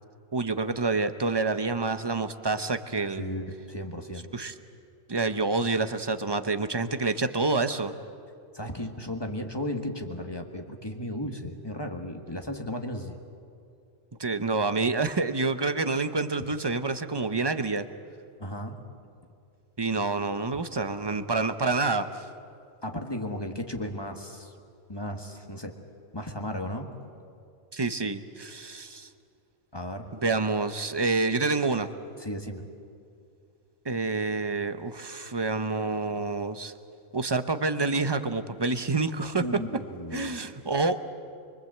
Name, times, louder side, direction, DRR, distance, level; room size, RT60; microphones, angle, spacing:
voice 1, 0.3-3.3 4.3-4.5 5.1-7.9 14.2-17.9 19.8-22.3 27.7-29.1 30.2-31.9 33.8-36.7 37.1-39.4 40.1-41.0, right 3 dB, 20° right, 10 dB, 0.7 m, -28 dB
voice 2, 3.1-4.3 8.5-13.1 18.4-18.8 22.8-24.5 24.9-25.8 26.1-26.9 29.7-30.1 32.2-32.6 39.4-40.5, left 1 dB, 20° left, 4 dB, 1.6 m, -35 dB
24.5 x 24.0 x 8.0 m, 2.4 s
omnidirectional pair, 1.4 m